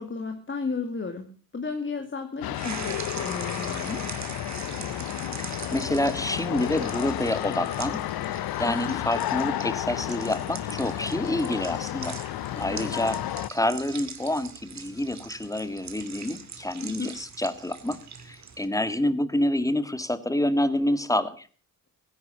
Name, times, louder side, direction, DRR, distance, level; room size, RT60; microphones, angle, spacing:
voice 1, 0.0-4.0 8.6-9.0 12.7-13.0 16.8-17.1, left 4 dB, 30° left, 5 dB, 2.3 m, -34 dB
sound 1, 2.4-13.5, left 13 dB, 75° left, 0.8 m, -32 dB
sound 2, 2.5-18.7, right 6 dB, 45° right, 2.5 m, -42 dB
voice 2, 5.4-12.2 12.6-13.2 13.5-18.0 18.2-21.5, left 1 dB, 10° left, 12 dB, 1.8 m, -28 dB
16.0 x 10.5 x 7.0 m, 0.41 s
cardioid pair, 80°, 37 cm